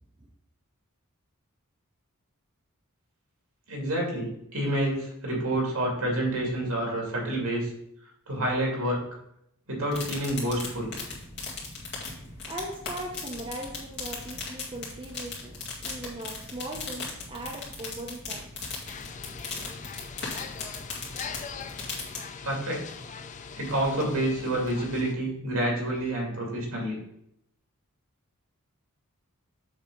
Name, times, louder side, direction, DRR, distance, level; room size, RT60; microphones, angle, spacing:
voice 1, 3.7-7.7 8.3-9.0 9.7-10.9 22.4-22.8 23.6-27.0, right 1 dB, 70° right, -2 dB, 2.5 m, -28 dB
sound 1, 9.9-22.2, left 3 dB, 50° left, 2.1 m, -38 dB
voice 2, 12.5-18.5, right 1 dB, 25° right, -2 dB, 0.7 m, -39 dB
sound 2, 18.9-25.1, left 6 dB, 35° left, 0.4 m, -41 dB
7.2 x 3.4 x 5.3 m, 0.76 s
head